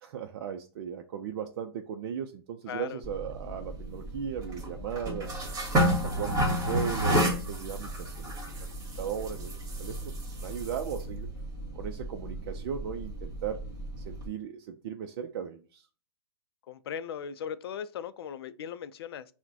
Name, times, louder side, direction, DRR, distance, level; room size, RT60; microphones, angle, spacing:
voice 1, 0.0-5.4 5.9-8.7 9.0-10.1 10.4-11.3 11.7-13.6 14.0-15.9, right 8 dB, 60° right, 0.5 m, -37 dB
voice 2, 2.7-3.0 16.7-19.3, left 8 dB, 70° left, 0.4 m, -38 dB
sound 1, 3.0-14.3, equal, 25° right, 1.6 m, -32 dB
5.8 x 2.1 x 2.7 m
hypercardioid pair, 120°, 13 cm